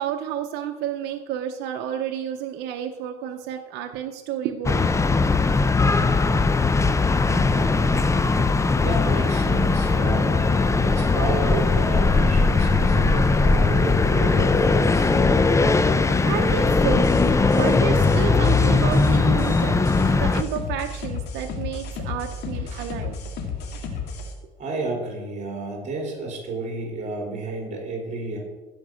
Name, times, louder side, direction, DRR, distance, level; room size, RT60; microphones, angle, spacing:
voice 1, 0.0-5.0 15.7-17.1 17.5-23.2, right 9 dB, 90° right, 4 dB, 0.8 m, -30 dB
sound 1, 4.6-20.4, left 3 dB, 15° left, 0.7 m, -19 dB
voice 2, 8.8-10.4 10.8-15.1 22.6-22.8 24.6-28.4, right 2 dB, 45° right, 0 dB, 4.0 m, -31 dB
sound 2, 16.8-24.3, left 5 dB, 80° left, 2.2 m, -32 dB
15.5 x 5.3 x 6.3 m, 1.2 s
cardioid pair, 110°, 17 cm